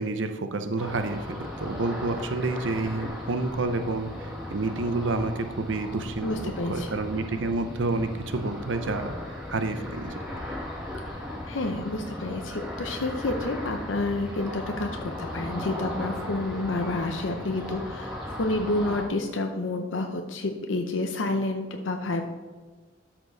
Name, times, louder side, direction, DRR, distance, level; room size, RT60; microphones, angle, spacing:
voice 1, 0.0-10.2, right 3 dB, 75° right, 8 dB, 0.7 m, -29 dB
Ocean, 0.8-19.0, left 1 dB, 5° right, 2.0 m, -37 dB
voice 2, 6.2-6.9 11.5-22.2, left 2 dB, 75° left, 4 dB, 0.7 m, -29 dB
12.5 x 4.5 x 4.0 m, 1.4 s
head